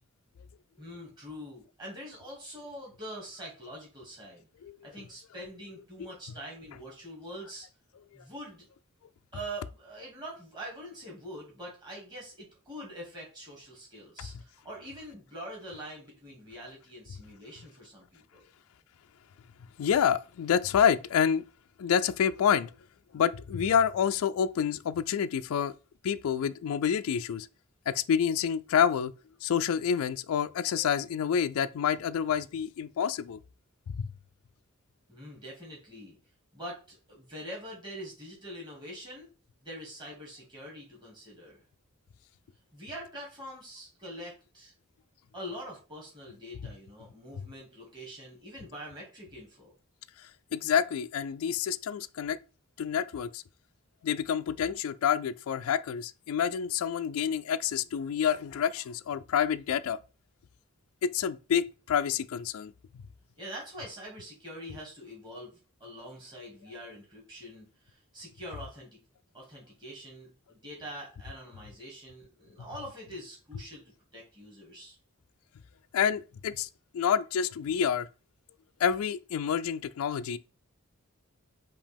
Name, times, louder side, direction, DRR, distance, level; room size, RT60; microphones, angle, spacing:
voice 1, 0.8-4.5 4.8-7.7 8.1-8.7 9.3-18.5 35.1-36.2 36.5-39.3 39.6-41.6 42.7-44.7 45.3-49.7 63.4-69.0 69.3-73.8 74.1-75.0, equal, 20° right, 2.0 m, -44 dB
voice 2, 19.8-21.4 21.8-22.7 23.1-25.7 26.0-27.5 27.9-29.1 29.4-33.4 33.9-34.1 46.6-46.7 50.5-52.4 52.8-53.4 54.0-60.0 61.0-62.7 75.9-76.7 76.9-78.1 78.8-80.4, left 8 dB, 70° left, 0.3 m, -28 dB
5.1 x 2.8 x 3.4 m
head